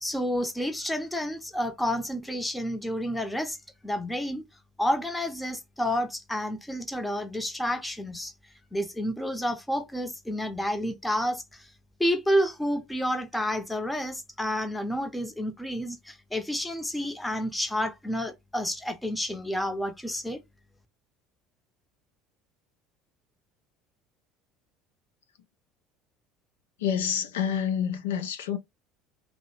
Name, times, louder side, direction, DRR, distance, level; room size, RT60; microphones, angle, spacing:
voice 1, 0.0-3.6 3.8-4.4 4.8-8.3 8.7-11.7 12.0-20.4, equal, 5° left, 0.7 m, -30 dB
voice 2, 26.8-28.6, left 8 dB, 80° left, 0.4 m, -28 dB
2.6 x 2.0 x 2.9 m
hypercardioid pair, 65°, 0 cm